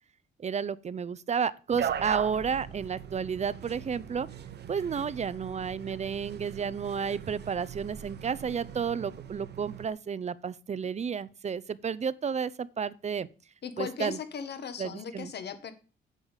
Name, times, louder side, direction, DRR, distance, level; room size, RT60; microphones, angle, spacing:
voice 1, 0.4-4.3 4.7-13.3 13.8-14.2 14.8-15.3, right 6 dB, 35° right, 0.7 m, -32 dB
sound 1, 1.7-9.9, right 8 dB, 55° right, 1.2 m, -39 dB
voice 2, 13.6-15.7, left 7 dB, 55° left, 1.6 m, -37 dB
8.3 x 5.4 x 7.3 m
cardioid pair, 90°, 20 cm